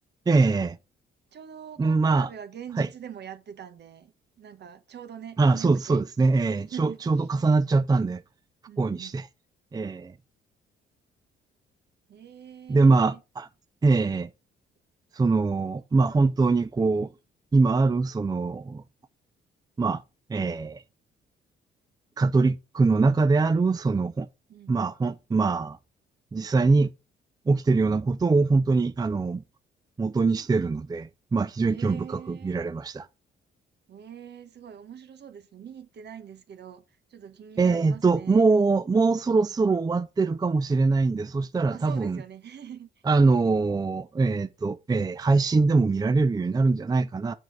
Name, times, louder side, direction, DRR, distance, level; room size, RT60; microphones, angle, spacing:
voice 1, 0.3-0.8 1.8-2.3 2.8-2.9 5.4-8.2 8.8-9.3 9.7-10.1 12.7-13.5 13.8-14.3 15.1-17.1 17.5-18.8 19.8-20.0 20.3-20.8 22.2-24.3 24.7-25.8 26.3-26.9 27.5-29.4 30.0-33.1 37.6-42.2 43.0-47.3, right 3 dB, 20° right, 0.5 m, -23 dB
voice 2, 1.3-6.0 6.6-7.2 8.7-9.2 12.1-13.2 24.5-24.8 31.6-32.6 33.9-36.8 37.1-38.4 41.7-42.9, right 8 dB, 60° right, 1.4 m, -43 dB
7.3 x 4.6 x 6.2 m
cardioid pair, 90°, 20 cm